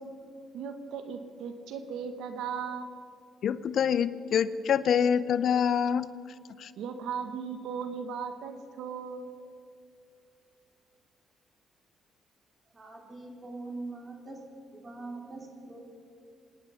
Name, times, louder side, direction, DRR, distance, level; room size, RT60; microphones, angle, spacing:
voice 1, 0.5-2.9 6.8-9.4, right 6 dB, 80° right, 7 dB, 1.2 m, -37 dB
voice 2, 3.4-6.1 6.6-6.7, left 8 dB, 65° left, 15 dB, 0.6 m, -26 dB
voice 3, 12.7-14.4 14.7-15.8, right 2 dB, 35° right, 1 dB, 3.7 m, -42 dB
26.0 x 9.8 x 5.7 m, 2.4 s
supercardioid pair, 75°, 0 cm